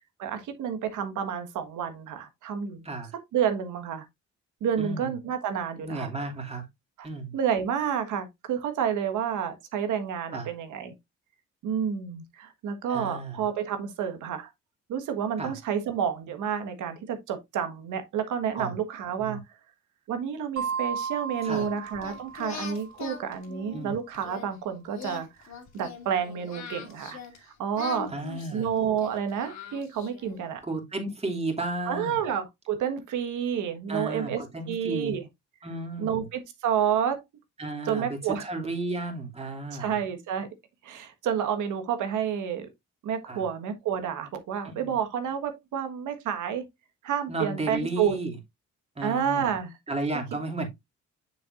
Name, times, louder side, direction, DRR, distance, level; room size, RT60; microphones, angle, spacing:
voice 1, 0.2-2.8 3.3-4.1 4.6-6.1 7.3-10.9 11.6-14.5 14.9-19.4 20.1-25.5 25.7-27.2 27.6-28.1 28.5-30.6 31.9-34.4 34.7-35.2 36.0-37.2 37.8-38.5 39.7-40.5 40.8-42.7 43.0-46.6 47.0-48.2 49.0-49.7, right 8 dB, 80° right, 1.6 m, -29 dB
voice 2, 5.8-6.7 7.0-7.3 10.3-10.5 12.9-13.4 15.4-15.6 18.5-18.7 19.2-19.4 21.4-21.7 23.7-23.9 28.1-28.7 30.6-32.1 33.9-35.2 35.6-36.3 37.6-40.0 43.2-43.4 44.6-44.9 47.3-48.4 49.0-49.5 49.9-50.7, right 2 dB, 20° right, 2.6 m, -33 dB
sound 1, 20.6-23.1, right 6 dB, 55° right, 2.4 m, -34 dB
Singing, 21.4-24.5 24.9-27.4 27.7-30.3, left 5 dB, 65° left, 2.6 m, -41 dB
7.0 x 6.8 x 2.5 m
cardioid pair, 90°, 30 cm